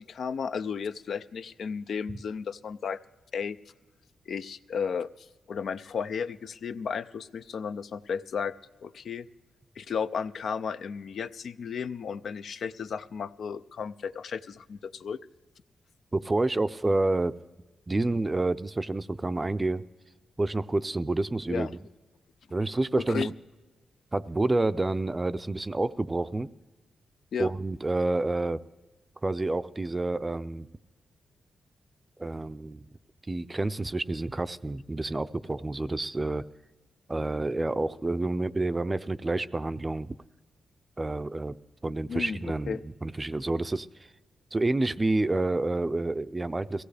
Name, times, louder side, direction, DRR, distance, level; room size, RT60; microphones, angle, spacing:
voice 1, 0.0-3.0 3.3-3.6 4.3-8.5 8.8-9.3 9.8-15.2 21.5-21.7 23.0-23.3 27.3-27.5 42.1-42.4 42.7-42.8, left 6 dB, 70° left, 12 dB, 0.4 m, -34 dB
voice 2, 16.1-17.3 17.9-19.8 20.4-21.7 22.5-23.3 24.1-26.5 27.4-28.6 29.2-30.7 32.2-32.9 33.3-36.4 37.1-40.1 41.0-41.6 41.8-44.1 44.5-46.8, right 2 dB, 20° right, 13 dB, 0.4 m, -28 dB
22.0 x 16.5 x 3.3 m, 1.2 s
cardioid pair, 85°, 0 cm